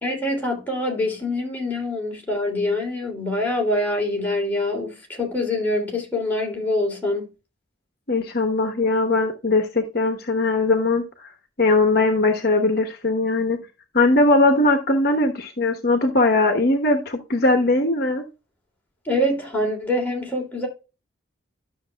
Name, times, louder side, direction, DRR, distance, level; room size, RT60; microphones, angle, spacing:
voice 1, 0.0-7.3 19.0-20.7, left 1 dB, 10° left, 2.9 m, -25 dB
voice 2, 8.1-11.3 11.6-13.6 13.9-18.2, left 2 dB, 50° left, 1.1 m, -20 dB
12.0 x 6.7 x 2.3 m
head